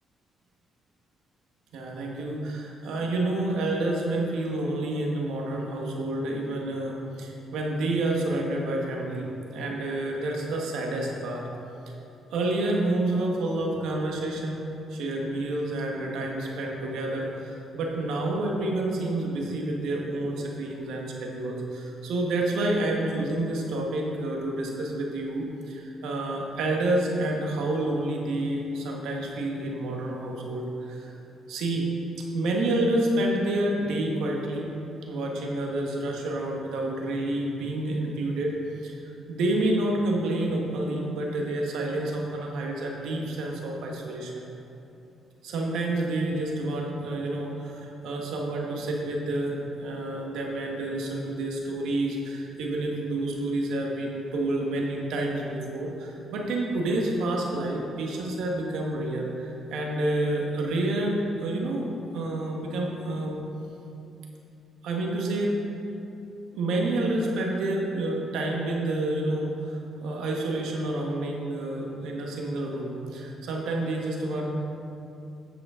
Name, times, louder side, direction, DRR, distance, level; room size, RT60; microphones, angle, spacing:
voice 1, 1.7-11.4 12.3-14.6 14.9-31.1 31.5-31.9 32.3-34.7 35.1-38.5 38.8-39.0 39.3-44.5 45.4-61.9 62.1-63.4 64.8-65.6 66.5-74.5, right 1 dB, 85° right, -1 dB, 1.3 m, -29 dB
9.1 x 7.6 x 3.7 m, 2.8 s
cardioid pair, 90°, 0 cm